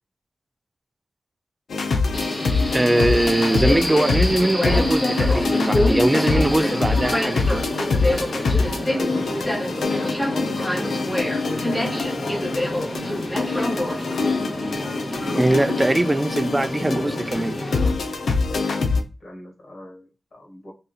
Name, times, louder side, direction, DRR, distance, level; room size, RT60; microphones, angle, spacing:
sound 1, 1.7-19.0, left 4 dB, 90° left, 0.6 m, -25 dB
Subway metro underground, 2.1-17.9, left 1 dB, 15° left, 0.9 m, -27 dB
voice 1, 2.7-7.6 15.3-17.6, right 1 dB, 20° right, 0.3 m, -21 dB
voice 2, 8.7-10.9 11.4-13.3 19.2-20.7, equal, 55° left, 1.8 m, -38 dB
3.6 x 2.8 x 2.3 m
wide cardioid pair, 90°, 0 cm